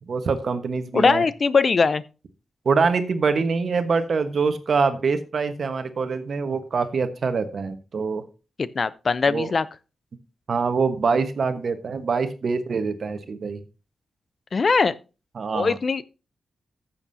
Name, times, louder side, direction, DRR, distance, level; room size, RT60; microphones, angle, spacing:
voice 1, 0.0-1.2 2.6-8.2 9.3-9.5 10.5-13.6 15.3-15.8, right 5 dB, 65° right, 1.3 m, -24 dB
voice 2, 0.9-2.0 8.6-9.7 14.5-15.0 15.5-16.0, left 4 dB, 50° left, 0.6 m, -21 dB
14.0 x 7.2 x 2.7 m
cardioid pair, 70°, 0 cm